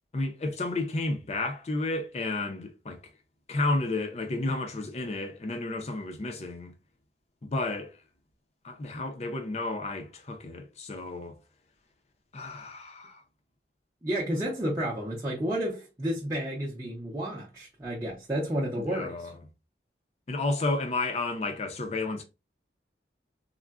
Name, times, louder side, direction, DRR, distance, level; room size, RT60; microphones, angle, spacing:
voice 1, 0.1-3.0 3.5-6.7 7.4-7.9 8.6-11.4 12.3-13.2 18.8-19.3 20.3-22.2, left 2 dB, 35° left, 0.5 m, -31 dB
voice 2, 14.0-19.3, equal, 20° right, 0.6 m, -31 dB
3.6 x 2.1 x 2.3 m
head